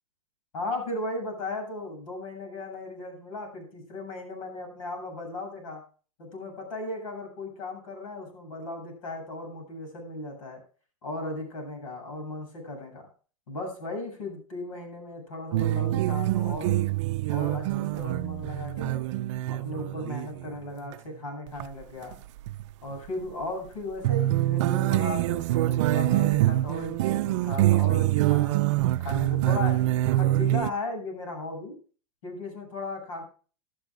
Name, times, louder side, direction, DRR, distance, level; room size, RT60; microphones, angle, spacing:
voice 1, 0.5-5.8 6.2-10.6 11.0-13.1 13.5-16.9 17.3-19.2 19.5-22.2 22.8-29.8 30.1-31.8 32.2-33.2, left 2 dB, 85° left, 3 dB, 7.8 m, -36 dB
sound 1, 15.5-20.6 20.9-21.0 21.5-21.7 22.1-22.7 24.0-30.7, right 15 dB, 65° right, 0.5 m, -25 dB
17.5 x 11.0 x 2.5 m, 0.39 s
supercardioid pair, 140°, 17 cm